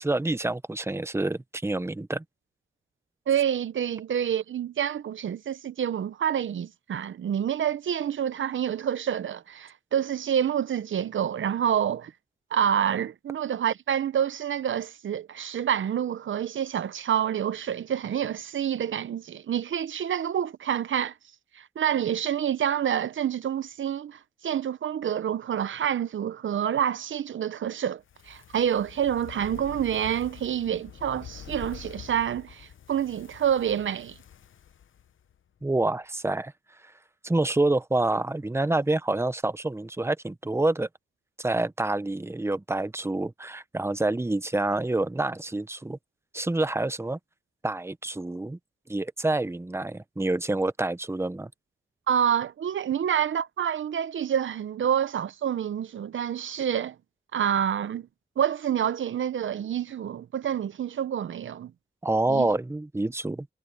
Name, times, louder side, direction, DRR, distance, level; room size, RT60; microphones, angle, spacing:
voice 1, 0.0-2.2 35.6-36.5 37.2-40.9 41.4-46.0 46.3-47.2 47.6-48.6 48.9-51.5 62.0-63.5, right 2 dB, 15° right, 0.8 m, -27 dB
voice 2, 3.3-12.1 12.5-21.1 21.5-34.2 52.1-56.9 57.3-58.1 58.4-61.7 62.3-62.5, right 9 dB, 85° right, 0.6 m, -28 dB
Fire, 28.0-35.4 35.7-35.8, left 9 dB, 85° left, 0.8 m, -46 dB
wide cardioid pair, 85°, 20 cm